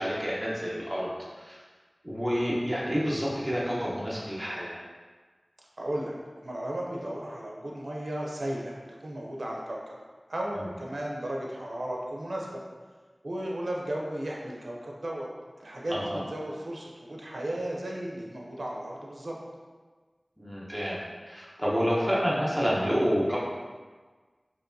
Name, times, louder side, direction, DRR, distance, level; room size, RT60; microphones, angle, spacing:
voice 1, 0.0-1.6 2.0-4.8 10.5-10.7 15.9-16.2 20.4-21.0 21.3-23.4, equal, 5° right, -7 dB, 0.8 m, -29 dB
voice 2, 5.8-6.1 6.4-8.8 9.0-9.9 10.3-12.6 13.2-15.3 15.6-19.3, right 1 dB, 85° right, -2 dB, 0.5 m, -35 dB
4.5 x 2.9 x 2.6 m, 1.4 s
wide cardioid pair, 50°, 0 cm